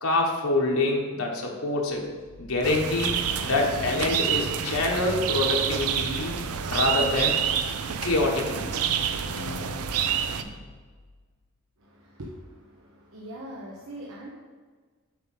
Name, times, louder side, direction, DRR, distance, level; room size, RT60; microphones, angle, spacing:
voice 1, 0.0-2.0 2.4-6.3 6.7-7.4 8.0-8.7 10.4-10.5, left 2 dB, 75° left, 0 dB, 1.3 m, -26 dB
sound 1, 2.2-11.2, left 4 dB, 45° left, 0.4 m, -44 dB
sound 2, 2.6-10.4, right 8 dB, 90° right, 0.5 m, -28 dB
voice 2, 11.8-14.3, right 1 dB, 70° right, -3 dB, 1.0 m, -42 dB
7.2 x 5.0 x 5.6 m, 1.5 s
head